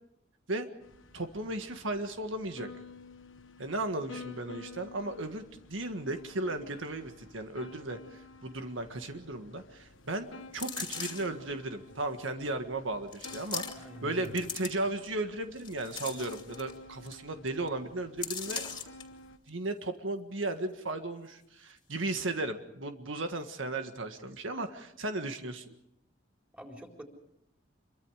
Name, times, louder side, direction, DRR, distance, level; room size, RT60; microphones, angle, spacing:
sound 1, 0.8-19.4, left 3 dB, 85° left, 1.3 m, -51 dB
voice 1, 1.1-2.7 3.6-10.3 10.5-18.7 19.5-25.7, right 2 dB, 90° right, 7 dB, 1.7 m, -35 dB
sound 2, 10.5-11.4 12.1-12.2 13.1-14.0 14.2-15.1 15.6-16.7 17.1-17.2 17.5-17.7 18.2-19.0 19.5-19.6, left 6 dB, 25° left, 2.6 m, -39 dB
voice 2, 13.7-14.4 26.5-27.0, equal, 5° right, 1 dB, 4.1 m, -46 dB
27.0 x 23.5 x 5.0 m, 0.80 s
head